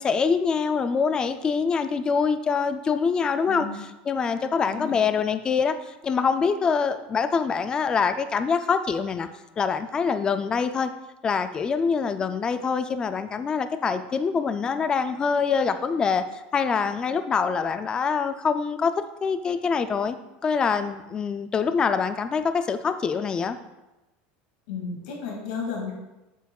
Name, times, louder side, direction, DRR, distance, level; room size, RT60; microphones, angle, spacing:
voice 1, 0.0-3.7 4.1-5.7 6.0-9.3 9.6-10.9 11.2-16.2 16.5-18.9 19.2-20.2 20.4-23.6, left 5 dB, 20° left, 10 dB, 0.3 m, -24 dB
voice 2, 3.5-3.8 4.7-5.0 24.7-25.9, left 5 dB, 90° left, -1 dB, 2.2 m, -33 dB
7.8 x 7.1 x 2.4 m, 1.0 s
cardioid pair, 160°, 5 cm